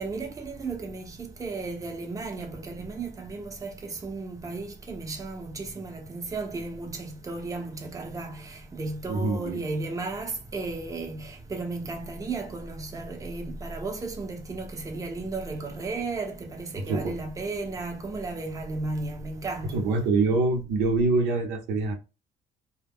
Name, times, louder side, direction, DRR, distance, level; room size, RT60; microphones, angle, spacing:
voice 1, 0.0-3.7 4.0-19.9, right 3 dB, 20° right, 0.6 m, -34 dB
voice 2, 9.1-9.6 16.9-17.2 19.7-21.9, right 3 dB, 90° right, 0.7 m, -25 dB
2.2 x 2.0 x 3.4 m
cardioid pair, 110°, 17 cm